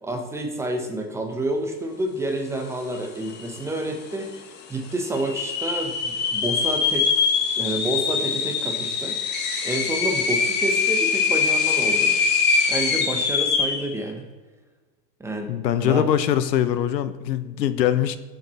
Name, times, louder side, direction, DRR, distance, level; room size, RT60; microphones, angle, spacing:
voice 1, 0.0-7.1 7.6-9.2 9.6-12.1 12.7-14.3 15.2-16.1, right 1 dB, 5° right, 3 dB, 0.9 m, -29 dB
sound 1, 3.0-3.1 3.3-3.8 4.3-4.4 5.2-13.9, left 5 dB, 20° left, 1.1 m, -23 dB
voice 2, 15.5-18.2, left 10 dB, 90° left, 13 dB, 1.2 m, -22 dB
19.0 x 7.8 x 4.3 m, 1.3 s
supercardioid pair, 160°, 49 cm